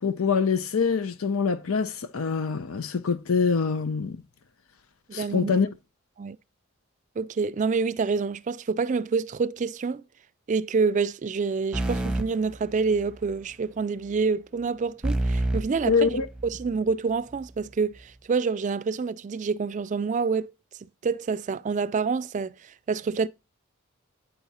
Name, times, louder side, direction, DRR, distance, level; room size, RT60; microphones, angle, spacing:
voice 1, 0.0-4.2 5.1-5.7 15.9-16.3, left 5 dB, 80° left, 0.7 m, -25 dB
voice 2, 5.1-5.6 6.2-6.4 7.2-10.0 10.5-20.5 21.0-23.3, right 5 dB, 35° right, 0.3 m, -27 dB
sound 1, 11.7-13.3 15.0-16.8, right 1 dB, 5° right, 0.7 m, -29 dB
9.1 x 4.8 x 4.1 m
head